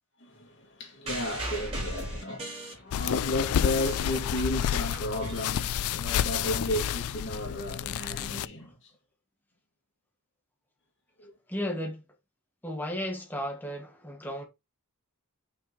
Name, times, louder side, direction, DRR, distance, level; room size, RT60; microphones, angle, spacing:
voice 1, 0.2-8.9 11.2-11.3, left 1 dB, 55° left, 3.1 m, -34 dB
sound 1, 1.1-3.3 3.6-6.2 7.1-7.2, right 1 dB, 25° right, 3.8 m, -38 dB
sound 2, 2.9-8.5, left 10 dB, 75° left, 0.3 m, -30 dB
voice 2, 11.5-12.0 12.6-14.4, left 1 dB, 10° left, 1.8 m, -34 dB
6.0 x 5.2 x 3.5 m
head